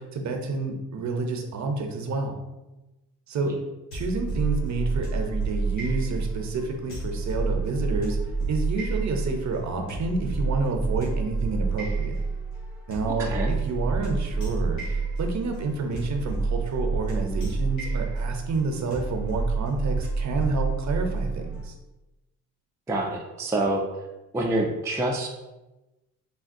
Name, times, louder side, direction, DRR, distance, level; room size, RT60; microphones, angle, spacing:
voice 1, 0.0-2.4 3.3-3.5 3.9-8.2 8.5-12.2 12.9-21.8, right 3 dB, 45° right, 3 dB, 0.6 m, -29 dB
sound 1, 3.9-21.7, right 4 dB, 90° left, 1.1 m, -29 dB
voice 2, 13.1-13.5 22.9-23.8 24.3-25.3, right 1 dB, 10° right, 0 dB, 0.3 m, -27 dB
3.5 x 2.2 x 2.5 m, 1.0 s
supercardioid pair, 60°, 40 cm